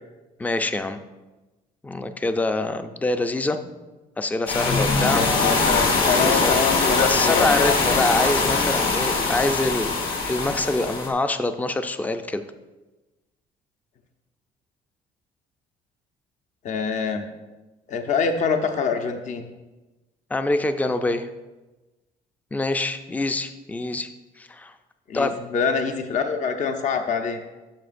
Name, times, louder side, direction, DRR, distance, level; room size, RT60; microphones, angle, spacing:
voice 1, 0.4-1.0 1.8-3.6 4.2-5.3 6.2-6.6 7.0-12.4 20.3-21.3 22.5-24.1 24.4-24.7 25.1-25.4, left 2 dB, 10° left, 9 dB, 0.4 m, -25 dB
sound 1, 4.5-11.1, left 3 dB, 60° left, 2.7 m, -22 dB
voice 2, 5.0-8.6 16.6-17.3 17.9-19.5 25.1-27.4, left 5 dB, 45° left, 6 dB, 0.7 m, -25 dB
12.5 x 6.2 x 2.6 m, 1.1 s
cardioid pair, 110°, 17 cm